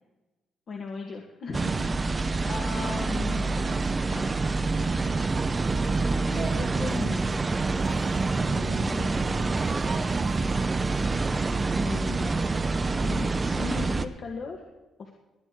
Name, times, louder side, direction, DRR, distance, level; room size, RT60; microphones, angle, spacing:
voice 1, 0.7-4.5 5.9-7.6 8.4-9.5 11.8-12.6 13.0-14.6 15.0-15.1, left 4 dB, 55° left, 1 dB, 2.0 m, -38 dB
sound 1, 1.5-14.1, right 3 dB, 30° right, 0.8 m, -26 dB
Speech, 3.3-4.0 4.3-7.1 7.5-9.0 9.4-11.2, right 5 dB, 45° right, 1.5 m, -43 dB
20.0 x 9.6 x 4.7 m, 1.1 s
cardioid pair, 90°, 0 cm